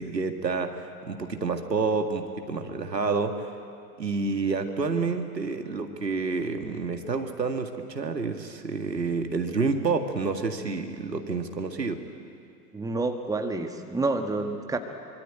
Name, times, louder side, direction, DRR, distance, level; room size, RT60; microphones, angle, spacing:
voice 1, 0.0-3.5 4.0-12.0, right 4 dB, 80° right, 6 dB, 2.1 m, -29 dB
voice 2, 12.7-14.8, right 3 dB, 5° right, 5 dB, 1.7 m, -28 dB
24.5 x 23.5 x 9.0 m, 2.4 s
figure-of-eight pair, 90°, 49 cm